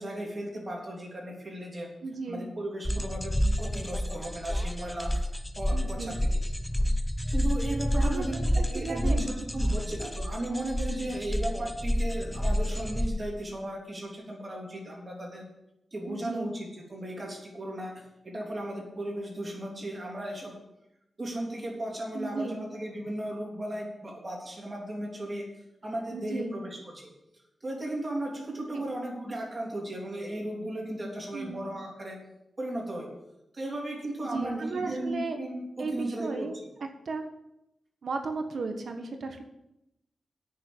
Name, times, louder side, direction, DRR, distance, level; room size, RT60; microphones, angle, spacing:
voice 1, 0.0-1.9 2.3-3.3 3.6-5.3 5.5-6.1 7.3-15.4 15.9-20.5 21.2-25.5 25.8-27.1 27.6-32.2 32.6-33.1 33.5-36.5, right 1 dB, 35° right, -1 dB, 3.2 m, -36 dB
voice 2, 2.0-2.5 5.7-6.2 7.9-9.3 16.1-16.5 22.1-22.6 26.1-26.6 28.7-28.8 31.3-31.7 34.2-35.4 35.8-36.5 37.0-37.3 38.0-39.4, right 3 dB, 70° right, 5 dB, 1.3 m, -35 dB
sound 1, 2.9-13.1, equal, 5° left, 0.8 m, -29 dB
8.6 x 6.7 x 8.6 m, 0.88 s
wide cardioid pair, 85°, 0 cm